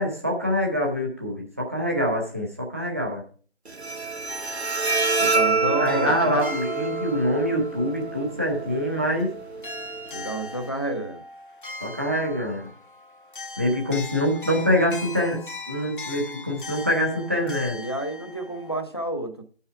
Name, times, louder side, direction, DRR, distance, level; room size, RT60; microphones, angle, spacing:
voice 1, 0.0-3.2 5.8-9.3 11.8-12.7 13.6-17.8, equal, 15° right, -1 dB, 0.8 m, -25 dB
Bowed string instrument, 3.7-10.7, right 3 dB, 85° right, 1.0 m, -28 dB
sound 1, 4.3-9.3 9.6-18.8, left 2 dB, 55° left, 0.9 m, -40 dB
voice 2, 5.2-6.4 10.1-11.2 17.7-19.4, right 1 dB, 25° left, 7 dB, 0.6 m, -30 dB
10.5 x 5.6 x 4.6 m, 0.41 s
figure-of-eight pair, 160°, 32 cm